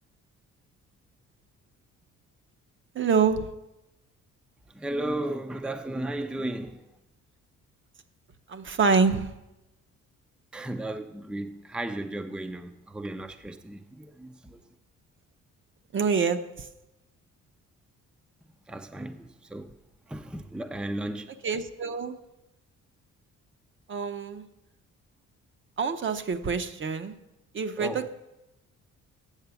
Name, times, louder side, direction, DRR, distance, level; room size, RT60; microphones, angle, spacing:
voice 1, 2.9-3.5 8.5-9.3 15.9-16.4 21.4-22.2 23.9-24.5 25.8-27.2 27.5-28.1, right 5 dB, 40° right, 0.7 m, -26 dB
voice 2, 4.7-6.9 10.5-14.6 18.7-19.7 20.1-21.4 27.8-28.1, right 1 dB, 5° right, 0.5 m, -35 dB
8.2 x 6.6 x 7.0 m
cardioid pair, 90°, 30 cm